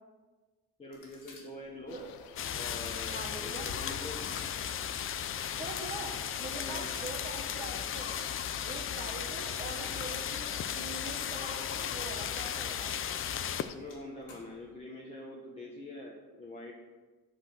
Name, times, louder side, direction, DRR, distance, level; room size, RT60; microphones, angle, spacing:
voice 1, 0.8-2.0 2.6-4.2 6.6-6.8 13.7-16.7, left 2 dB, 20° left, -3 dB, 1.1 m, -45 dB
sound 1, 0.9-3.8 4.2-14.8, left 4 dB, 70° left, 2.5 m, -56 dB
sound 2, 1.9-13.8, left 10 dB, 90° left, 0.7 m, -49 dB
sound 3, 2.4-13.6, left 8 dB, 40° left, 0.5 m, -36 dB
voice 2, 3.1-3.7 5.6-8.1 8.6-12.9, right 2 dB, 25° right, 1 dB, 1.3 m, -43 dB
9.2 x 6.2 x 6.1 m, 1.3 s
cardioid pair, 150°, 35 cm